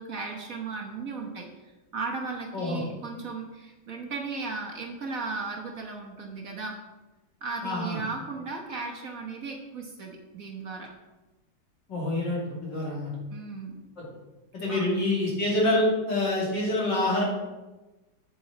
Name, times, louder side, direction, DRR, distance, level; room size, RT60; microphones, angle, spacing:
voice 1, 0.0-6.7 7.4-10.9 13.3-13.8 14.7-15.0, right 4 dB, 50° right, 1 dB, 1.4 m, -36 dB
voice 2, 7.6-8.0 11.9-13.1 14.0-14.1 14.5-17.2, left 1 dB, 65° left, -4 dB, 3.3 m, -26 dB
8.2 x 7.9 x 4.1 m, 1.1 s
omnidirectional pair, 2.0 m